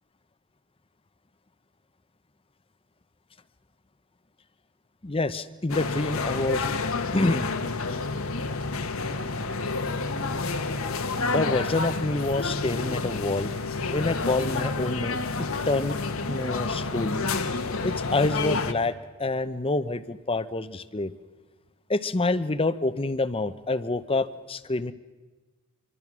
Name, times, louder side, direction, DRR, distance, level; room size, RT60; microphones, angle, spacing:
voice 1, 5.0-6.7 7.1-7.5 11.2-13.5 13.9-15.2 15.7-16.0 16.3-17.3 17.8-21.1 21.9-24.9, left 2 dB, 25° left, 14 dB, 0.7 m, -27 dB
sound 1, 5.7-18.7, left 3 dB, 75° left, 1.4 m, -29 dB
25.0 x 24.0 x 6.2 m, 1.2 s
head